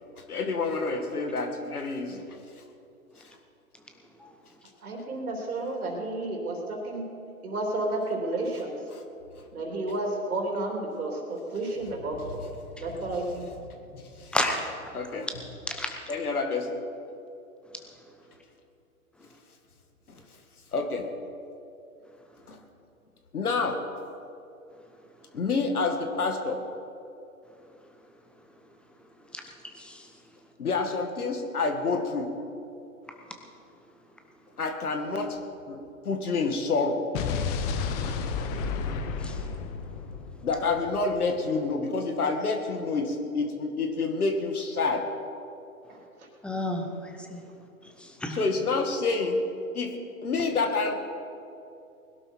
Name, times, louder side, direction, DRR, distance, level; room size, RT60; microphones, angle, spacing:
voice 1, 0.3-2.3 8.9-9.0 13.9-14.4 14.9-15.3 16.1-16.8 20.7-21.1 22.5-22.6 23.3-23.8 25.3-26.6 30.6-32.3 34.6-35.4 35.7-35.8 36.0-37.1 40.4-45.1 48.3-49.4 49.7-51.0, left 3 dB, 80° left, 5 dB, 2.2 m, -28 dB
voice 2, 4.8-7.0 7.4-8.8 9.5-12.4 12.8-13.5 45.9-46.0, right 2 dB, 75° right, 1 dB, 3.4 m, -31 dB
voice 3, 14.3-14.7 15.7-15.9 29.3-29.4 29.8-30.0 39.2-39.4 46.4-47.4 48.0-48.4, left 1 dB, ahead, 3 dB, 1.1 m, -31 dB
Explosion, 37.1-41.2, left 5 dB, 25° left, 1.0 m, -31 dB
20.5 x 12.0 x 4.6 m, 2.7 s
hypercardioid pair, 130°, 44 cm